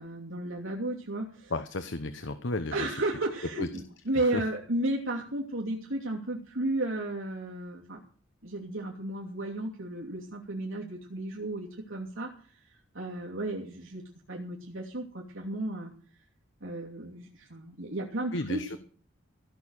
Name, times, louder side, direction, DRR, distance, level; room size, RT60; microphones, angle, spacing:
voice 1, 0.0-1.5 2.7-8.0 8.4-12.3 12.7-14.0 14.3-15.9 16.6-18.8, right 1 dB, 85° right, -2 dB, 2.8 m, -33 dB
voice 2, 1.5-3.0 3.6-3.7 4.3-4.4 18.3-18.8, left 2 dB, 65° left, 11 dB, 1.0 m, -33 dB
16.0 x 6.5 x 9.0 m, 0.43 s
head